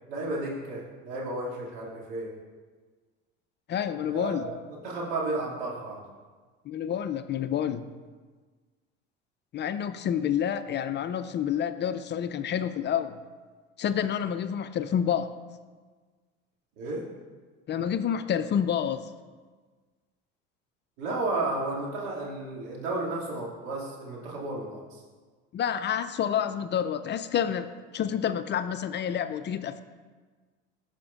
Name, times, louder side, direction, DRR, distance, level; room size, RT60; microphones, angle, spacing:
voice 1, 0.1-2.3 4.1-6.0 16.8-17.0 21.0-25.0, right 2 dB, 75° right, -4 dB, 2.3 m, -33 dB
voice 2, 3.7-4.5 6.7-7.9 9.5-13.2 13.8-15.3 17.7-19.1 25.5-27.7 27.9-29.8, left 9 dB, 40° left, 11 dB, 0.5 m, -28 dB
14.5 x 5.9 x 2.4 m, 1.4 s
hypercardioid pair, 70°, 29 cm